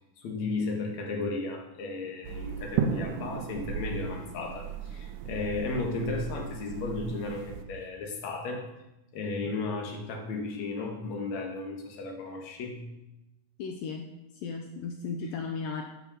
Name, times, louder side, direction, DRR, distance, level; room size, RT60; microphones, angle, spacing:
voice 1, 0.0-8.6 9.1-12.8, left 3 dB, 55° left, 2 dB, 2.8 m, -34 dB
sound 1, 2.2-7.6, right 6 dB, 75° right, 2.2 m, -35 dB
voice 2, 13.6-15.8, left 5 dB, 80° left, 3 dB, 2.5 m, -36 dB
9.3 x 8.8 x 7.0 m, 0.96 s
omnidirectional pair, 4.0 m